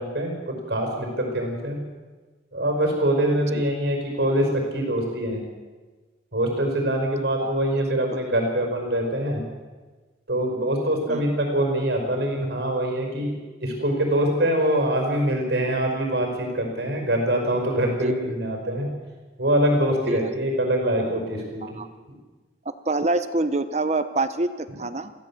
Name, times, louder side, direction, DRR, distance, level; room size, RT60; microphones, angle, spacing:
voice 1, 0.0-1.8 2.5-5.4 6.3-9.4 10.3-13.3 13.6-18.9 19.4-21.8, right 1 dB, 70° right, 2 dB, 5.0 m, -24 dB
voice 2, 18.0-18.3 20.1-20.3 21.6-21.9 22.8-25.1, right 2 dB, 40° right, 11 dB, 0.8 m, -26 dB
23.0 x 15.5 x 7.3 m, 1.3 s
head